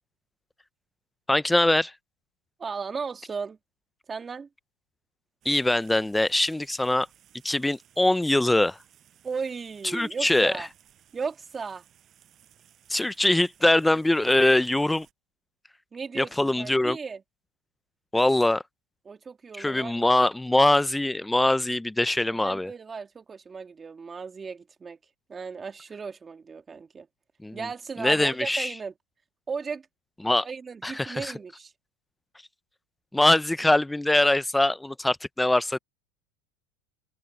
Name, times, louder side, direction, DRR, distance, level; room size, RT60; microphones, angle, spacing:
voice 1, 1.3-1.9 5.4-7.1 7.4-8.8 9.9-10.5 12.9-15.1 16.2-17.0 18.1-18.6 19.6-22.7 27.4-27.6 28.0-28.7 30.2-30.5 30.8-31.3 33.1-35.8, left 1 dB, 5° left, 0.6 m, -23 dB
voice 2, 2.6-3.6 4.1-4.5 9.2-10.7 11.1-11.8 15.9-17.2 19.0-20.3 22.3-25.0 25.3-27.1 27.5-28.9 29.5-29.9 30.4-31.7, right 5 dB, 20° right, 2.4 m, -36 dB
sound 1, 5.4-15.1, right 10 dB, 35° right, 7.0 m, -60 dB
supercardioid pair, 130°, 0 cm